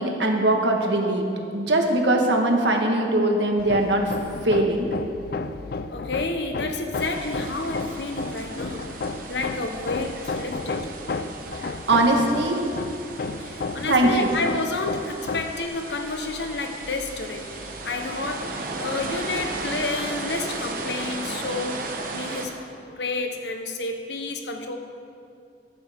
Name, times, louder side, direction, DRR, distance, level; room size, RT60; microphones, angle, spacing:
voice 1, 0.0-4.1 4.4-4.9 11.6-12.7 13.9-14.3, right 2 dB, 85° right, 2 dB, 1.5 m, -21 dB
Hammer, 3.6-15.7, left 3 dB, 55° left, 0.4 m, -33 dB
voice 2, 5.9-9.0 9.3-10.9 13.4-22.6 22.9-24.8, left 3 dB, 75° left, 5 dB, 1.0 m, -30 dB
sound 1, 6.9-22.5, right 3 dB, 50° right, 1.2 m, -36 dB
13.5 x 12.0 x 3.6 m, 2.5 s
head